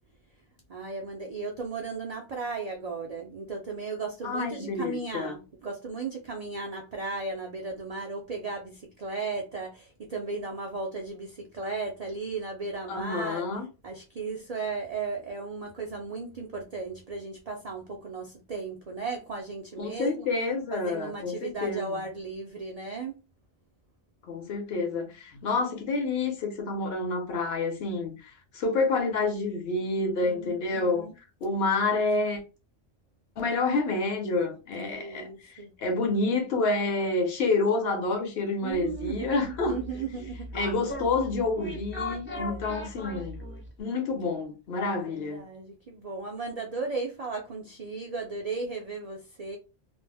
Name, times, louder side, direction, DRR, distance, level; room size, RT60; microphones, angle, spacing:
voice 1, 0.7-13.5 13.8-20.3 20.7-23.1 30.2-31.1 34.8-35.7 38.6-40.7 42.3-42.7 44.9-49.6, right 4 dB, 55° right, 0.4 m, -36 dB
voice 2, 4.2-5.4 12.9-13.7 19.8-22.0 24.3-31.1 31.4-32.4 33.4-39.8 40.5-43.4 43.8-45.4, left 3 dB, 60° left, 0.9 m, -28 dB
sound 1, 38.7-43.8, left 1 dB, 20° left, 0.3 m, -39 dB
2.4 x 2.0 x 3.3 m
omnidirectional pair, 1.2 m